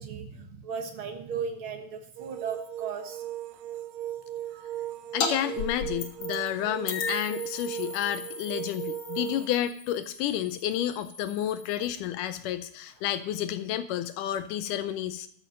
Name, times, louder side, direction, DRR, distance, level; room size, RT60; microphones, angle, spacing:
voice 1, 0.0-3.2, right 6 dB, 60° right, 4 dB, 1.4 m, -36 dB
sound 1, 2.2-9.5, right 13 dB, 80° right, 2.2 m, -37 dB
voice 2, 5.1-15.3, left 11 dB, 80° left, 11 dB, 2.0 m, -30 dB
sound 2, 5.2-5.3 5.6-6.5 6.9-12.0, left 6 dB, 60° left, 2.4 m, -36 dB
13.0 x 7.6 x 5.3 m, 0.66 s
omnidirectional pair, 4.1 m